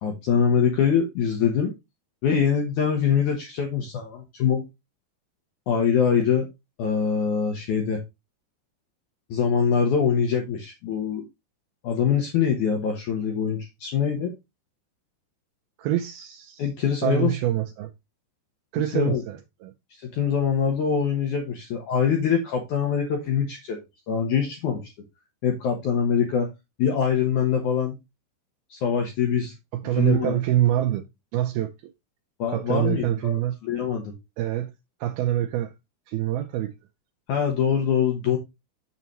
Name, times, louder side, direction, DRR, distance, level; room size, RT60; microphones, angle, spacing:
voice 1, 0.0-1.7 2.2-4.7 5.7-6.5 6.8-8.0 9.3-11.2 11.8-14.3 16.6-17.4 18.9-19.2 20.0-24.9 25.4-26.5 26.8-28.0 28.7-29.5 29.9-30.4 32.4-34.1 37.3-38.4, left 7 dB, 70° left, 1.9 m, -24 dB
voice 2, 15.8-16.7 17.0-17.9 18.7-19.7 29.7-31.0 31.3-31.7 32.5-33.6 34.4-34.7 35.0-35.7 36.1-36.7, right 13 dB, 80° right, 2.3 m, -25 dB
7.1 x 6.8 x 3.1 m
omnidirectional pair, 5.0 m